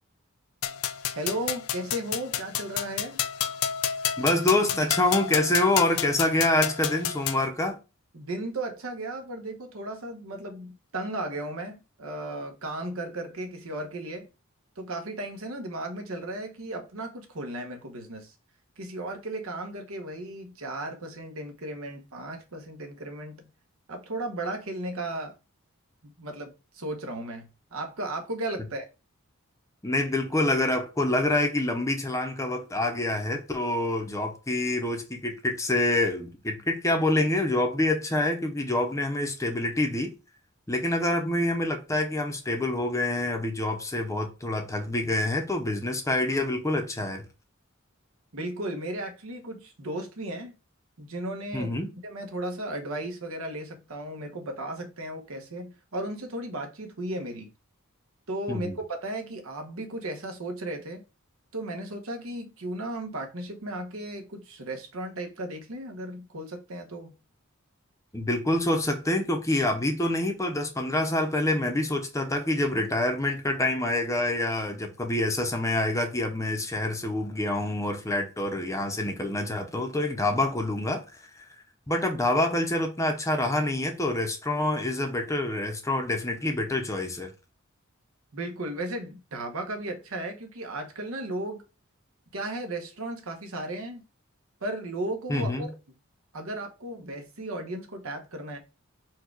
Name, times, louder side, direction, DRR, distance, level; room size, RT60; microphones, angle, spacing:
sound 1, 0.6-7.5, left 9 dB, 80° left, 0.5 m, -30 dB
voice 1, 1.1-3.2 8.1-14.3 14.8-18.3 18.8-23.5 23.9-25.3 26.0-28.9 48.3-50.5 51.0-51.7 52.0-57.5 58.3-61.0 61.5-67.1 88.3-91.6 92.3-94.0 94.6-95.7 96.3-98.6, right 1 dB, 70° right, 1.0 m, -35 dB
voice 2, 4.2-7.8 29.8-40.1 40.7-47.3 51.5-51.9 58.5-58.8 68.1-81.2 81.9-87.3 95.3-95.7, left 1 dB, 15° left, 0.7 m, -26 dB
4.6 x 2.4 x 4.5 m
head